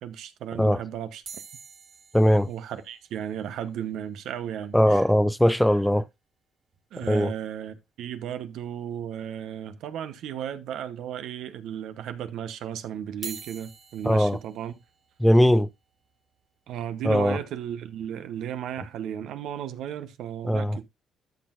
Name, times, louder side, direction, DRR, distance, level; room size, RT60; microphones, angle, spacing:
voice 1, 0.0-1.4 2.5-5.1 6.9-14.7 16.7-20.9, right 9 dB, 80° right, 0.9 m, -35 dB
sound 1, 1.2-5.6 5.9-6.0 6.2-6.3 6.7-6.9 8.2-8.3 9.0-9.5 10.0-10.1 11.0-11.1 13.1-19.1 19.7-20.0, right 5 dB, 55° right, 2.9 m, -48 dB
voice 2, 2.1-2.5 4.7-6.1 7.1-7.3 14.0-14.4 15.2-15.7 17.0-17.4 20.4-20.8, equal, 5° left, 0.4 m, -20 dB
13.0 x 6.0 x 2.5 m
cardioid pair, 90°, 0 cm